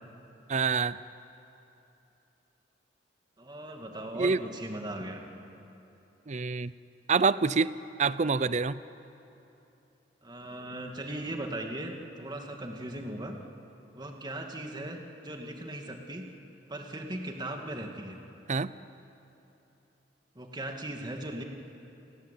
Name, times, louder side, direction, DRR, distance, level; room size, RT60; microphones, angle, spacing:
voice 1, 0.5-1.0 4.2-4.4 6.3-6.7 7.1-7.7 8.0-8.8 18.5-18.7, right 4 dB, 40° right, 16 dB, 0.6 m, -26 dB
voice 2, 3.4-5.2 10.2-13.4 13.9-15.0 15.2-16.3 16.7-18.2 20.4-21.4, right 1 dB, 25° right, 3 dB, 2.2 m, -38 dB
29.0 x 20.5 x 8.4 m, 3.0 s
head